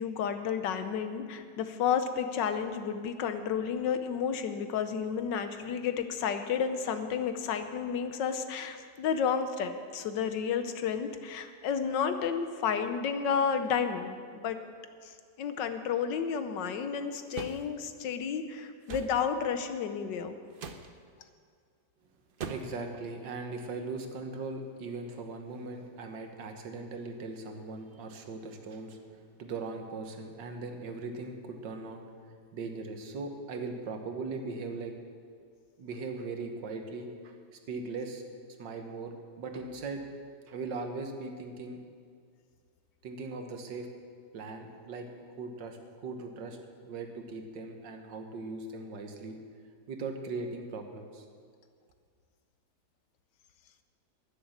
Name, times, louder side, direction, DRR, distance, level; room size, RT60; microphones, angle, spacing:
voice 1, 0.0-14.6 15.4-20.4, left 7 dB, 85° left, 9 dB, 1.5 m, -31 dB
sound 1, 17.3-17.6 18.9-19.2 20.5-20.9 22.4-22.8, right 5 dB, 70° right, 0.5 m, -39 dB
voice 2, 22.5-32.0 32.5-34.9 35.8-37.3 37.7-38.2 38.6-40.0 40.5-41.8 43.0-43.9 44.3-46.6 46.8-49.4 49.9-51.3, right 3 dB, 85° right, 5 dB, 1.9 m, -39 dB
10.5 x 10.0 x 7.4 m, 2.1 s
omnidirectional pair, 1.9 m